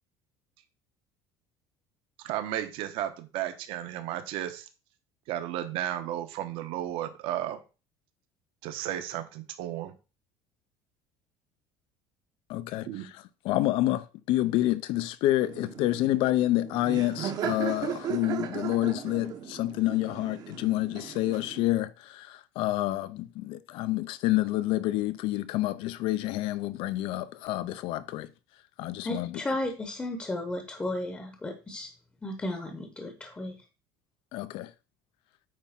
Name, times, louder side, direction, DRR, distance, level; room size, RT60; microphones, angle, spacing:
voice 1, 2.2-4.6 5.3-7.6 8.6-9.9 12.9-13.1, right 12 dB, 60° right, 1.1 m, -33 dB
voice 2, 12.5-28.3 28.8-29.3 34.3-34.7, left 16 dB, 60° left, 0.6 m, -28 dB
Laughter, 15.4-21.7, right 9 dB, 40° right, 0.9 m, -37 dB
voice 3, 29.0-31.9 32.2-33.6, left 1 dB, 10° left, 0.9 m, -34 dB
8.8 x 3.5 x 5.7 m
cardioid pair, 165°, 10 cm